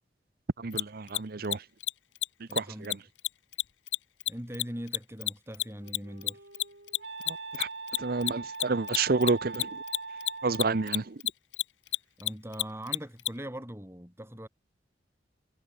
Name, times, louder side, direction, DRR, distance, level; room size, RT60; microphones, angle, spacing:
voice 1, 0.6-1.6 2.5-3.0 7.3-7.7 8.0-9.8 10.4-11.2, right 3 dB, 55° right, 0.7 m, -29 dB
Mechanisms, 0.7-0.8 1.1-1.2 1.4-1.6 1.8-1.9 2.2-2.3 2.5-2.6 2.8-2.9 3.2-6.0 6.2-13.3, left 16 dB, 85° left, 0.6 m, -29 dB
voice 2, 2.5-3.0 4.3-6.4 12.2-14.5, equal, 15° right, 5.6 m, -41 dB
Wind instrument woodwind instrument, 5.6-11.1, right 4 dB, 75° right, 6.3 m, -42 dB
head